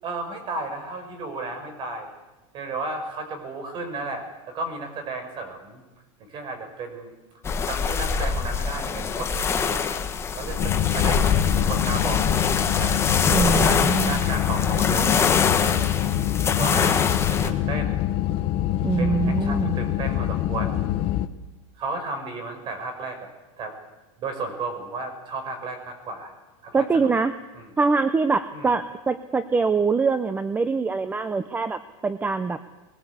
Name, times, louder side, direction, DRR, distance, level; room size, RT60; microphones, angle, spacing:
voice 1, 0.0-2.1 2.5-5.8 6.3-7.1 7.7-10.0 10.4-11.3 11.6-15.1 15.6-16.1 16.6-18.1 19.0-20.8 21.8-23.3 23.6-23.8 24.2-26.3 26.6-27.1 27.5-27.7 28.5-28.7, right 3 dB, 30° right, 7 dB, 5.2 m, -34 dB
sound 1, 7.4-17.5, left 6 dB, 15° left, 1.3 m, -24 dB
sound 2, 10.6-21.3, left 12 dB, 35° left, 1.1 m, -25 dB
voice 2, 13.3-14.2 18.8-19.7 26.7-27.3 27.8-32.6, right 4 dB, 10° right, 12 dB, 0.6 m, -23 dB
21.5 x 20.0 x 8.2 m, 1.1 s
supercardioid pair, 160°, 17 cm